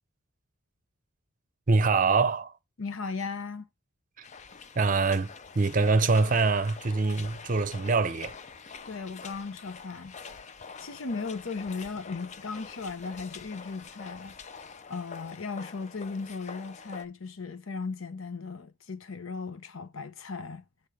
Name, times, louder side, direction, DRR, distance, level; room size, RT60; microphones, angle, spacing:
voice 1, 1.7-2.5 4.8-8.3, right 4 dB, 40° right, 0.6 m, -24 dB
voice 2, 2.8-3.7 8.9-10.5 10.8-20.6, left 4 dB, 75° left, 0.8 m, -37 dB
sound 1, 4.2-17.1, left 5 dB, 35° left, 0.5 m, -46 dB
7.5 x 3.6 x 4.9 m
head